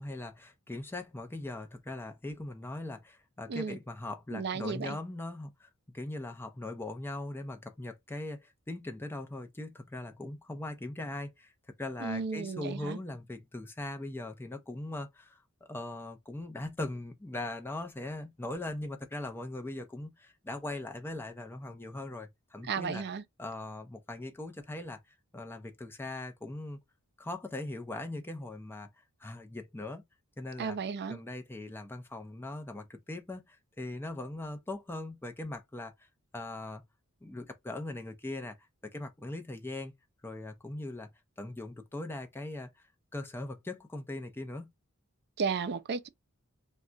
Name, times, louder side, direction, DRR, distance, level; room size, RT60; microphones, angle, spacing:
voice 1, 0.0-11.5 11.8-15.4 15.7-23.0 23.4-25.0 25.3-26.8 27.2-28.9 29.2-30.0 30.4-30.8 31.1-35.9 36.3-36.8 37.2-38.6 38.8-39.9 40.2-41.1 41.4-42.9 43.1-44.7, left 2 dB, 10° left, 0.5 m, -40 dB
voice 2, 4.3-5.0 12.0-13.0 22.7-23.2 30.6-31.2 45.4-46.1, right 5 dB, 50° right, 0.4 m, -34 dB
2.4 x 2.2 x 3.7 m
head